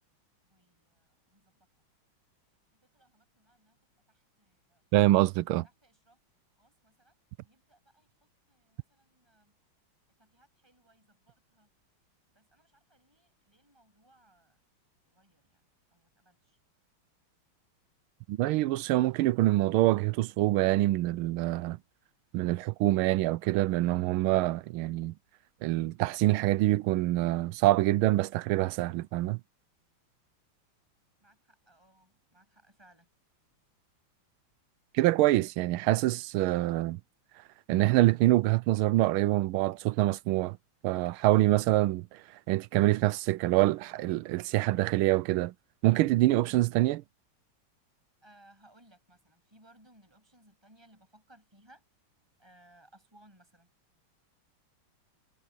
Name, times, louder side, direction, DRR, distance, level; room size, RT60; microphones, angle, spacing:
voice 1, 0.4-1.7 2.7-3.8 4.1-4.9 5.6-6.2 6.6-7.2 7.4-9.6 10.2-11.7 12.3-14.6 15.1-16.6 31.2-33.1 48.2-51.8 52.4-53.7, right 1 dB, 10° right, 8.0 m, -63 dB
voice 2, 4.9-5.6 18.3-21.8 22.3-25.1 25.6-29.4 34.9-37.0 37.7-40.6 40.8-45.5 45.8-47.0, right 16 dB, 90° right, 1.5 m, -25 dB
omnidirectional pair, 2.3 m